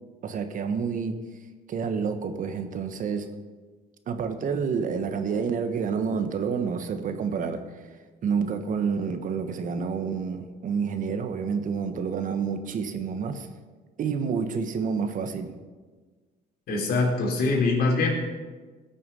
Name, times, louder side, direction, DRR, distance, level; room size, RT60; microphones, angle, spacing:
voice 1, 0.2-1.2 1.7-3.3 4.1-7.6 8.2-13.5 14.0-15.5, right 6 dB, 50° right, 8 dB, 1.3 m, -28 dB
voice 2, 16.7-18.1, left 3 dB, 65° left, -1 dB, 3.6 m, -23 dB
17.5 x 6.7 x 5.5 m, 1.4 s
cardioid pair, 110°, 17 cm